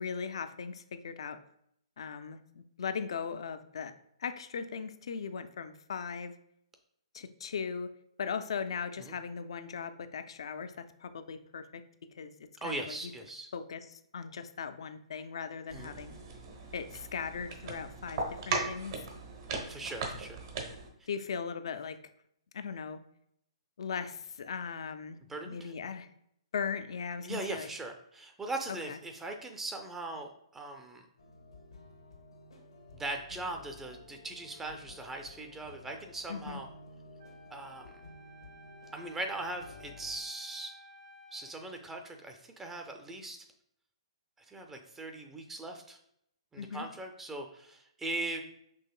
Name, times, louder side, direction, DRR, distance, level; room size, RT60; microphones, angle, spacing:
voice 1, 0.0-1.4 2.0-3.9 4.2-6.3 7.1-7.9 8.2-11.8 12.1-12.3 12.6-13.1 13.5-16.2 16.7-19.0 21.1-22.0 22.5-23.0 23.8-25.2 25.5-26.1 26.5-27.7 28.7-29.0 36.3-36.6 46.6-46.9, left 6 dB, 65° left, 11 dB, 0.3 m, -38 dB
voice 2, 12.6-13.5 15.7-16.0 19.7-20.4 25.3-25.7 27.2-31.0 32.9-36.7 37.5-38.0 38.9-40.7 41.3-43.4 44.5-46.0 46.5-48.4, right 2 dB, 10° right, 4 dB, 0.4 m, -40 dB
sound 1, 15.7-20.9, right 3 dB, 50° right, 0.9 m, -38 dB
sound 2, 31.2-40.2, left 2 dB, 85° left, 1.0 m, -53 dB
Wind instrument woodwind instrument, 37.2-41.6, left 1 dB, 80° right, 0.6 m, -55 dB
5.5 x 3.0 x 2.3 m, 0.72 s
hypercardioid pair, 130°, 3 cm